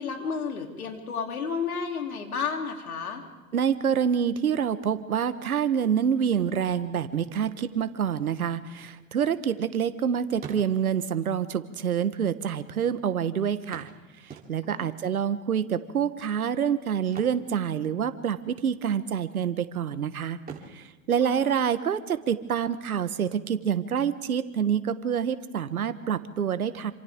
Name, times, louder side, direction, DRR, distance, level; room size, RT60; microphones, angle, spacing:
voice 1, 0.0-3.2 14.6-15.0 21.2-21.5, left 5 dB, 85° left, 3 dB, 3.2 m, -32 dB
voice 2, 3.5-13.9 14.2-20.4 20.7-26.9, right 8 dB, 90° right, 12 dB, 1.2 m, -27 dB
sound 1, 9.0-10.0 10.3-11.1 12.1-12.2 12.4-12.5 13.7-14.9 17.0-18.3 18.5-18.8 19.3-19.9 20.4-22.1 24.1-24.2 24.7-24.8, right 6 dB, 20° right, 3.4 m, -46 dB
27.5 x 26.5 x 3.6 m, 1.2 s
hypercardioid pair, 100°, 42 cm